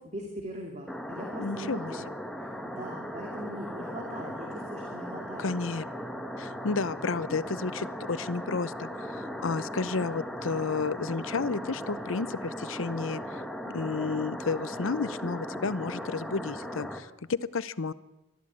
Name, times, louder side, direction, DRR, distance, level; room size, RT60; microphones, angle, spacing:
voice 1, 0.0-2.1 2.4-5.6, equal, 35° right, 1 dB, 2.5 m, -40 dB
sound 1, 0.9-17.0, equal, ahead, 1.4 m, -38 dB
voice 2, 1.4-2.0 5.4-5.8 6.4-17.9, left 4 dB, 90° left, 17 dB, 0.7 m, -32 dB
22.5 x 13.5 x 8.5 m, 0.98 s
head